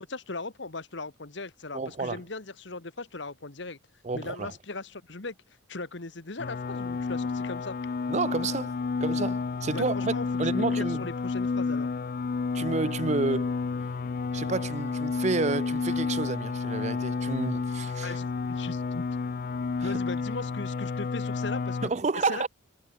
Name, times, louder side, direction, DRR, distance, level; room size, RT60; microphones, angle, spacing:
voice 1, 0.0-3.8 4.1-5.3 5.7-7.8 9.7-11.9 18.0-19.1 19.8-21.9 22.3-22.5, left 3 dB, 60° left, 1.4 m, -38 dB
voice 2, 1.7-2.2 4.0-4.5 8.1-8.7 9.0-10.1 10.4-11.1 12.5-13.6 14.3-18.2 19.8-19.9 21.8-22.5, right 3 dB, 35° right, 0.5 m, -30 dB
sound 1, 6.4-21.9, left 4 dB, 40° left, 0.3 m, -30 dB
head